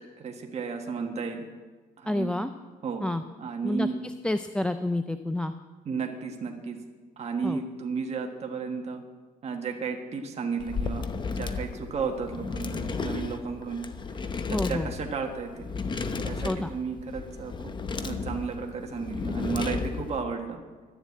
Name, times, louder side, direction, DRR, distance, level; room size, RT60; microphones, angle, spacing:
voice 1, 0.2-1.4 2.0-2.3 2.8-3.1 3.4-4.0 5.8-6.8 7.2-9.0 9.4-11.0 11.3-13.8 14.5-15.8 16.2-17.7 18.0-20.6, right 5 dB, 40° right, 2 dB, 1.4 m, -33 dB
voice 2, 2.0-2.5 3.0-3.2 3.6-3.9 4.2-5.5 7.4-7.6 14.5-14.9 16.4-16.7, left 1 dB, 5° left, 9 dB, 0.4 m, -28 dB
sound 1, 10.6-20.2, left 4 dB, 25° left, 0.8 m, -33 dB
12.5 x 7.3 x 8.4 m, 1.4 s
cardioid pair, 110°, 17 cm